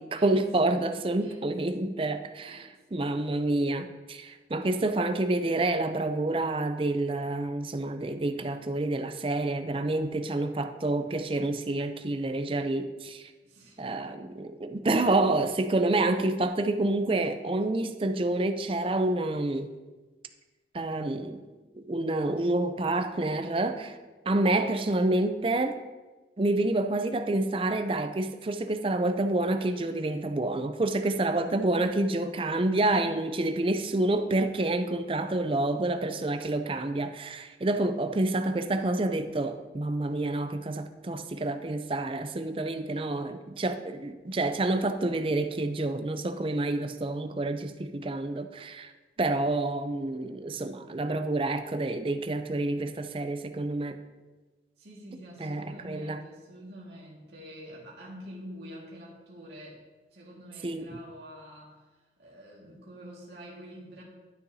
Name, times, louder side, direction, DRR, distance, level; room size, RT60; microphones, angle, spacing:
voice 1, 0.0-13.3 13.8-19.7 20.7-21.4 21.7-24.0 24.3-25.8 26.4-48.9 49.2-54.0 55.4-56.2 60.6-60.9, right 2 dB, 30° right, 8 dB, 0.4 m, -28 dB
voice 2, 2.4-3.2 9.6-9.9 13.4-13.9 42.6-43.0 54.8-59.8 60.1-61.9 62.2-64.0, equal, 75° right, -4 dB, 1.8 m, -47 dB
12.0 x 6.8 x 2.7 m, 1.2 s
head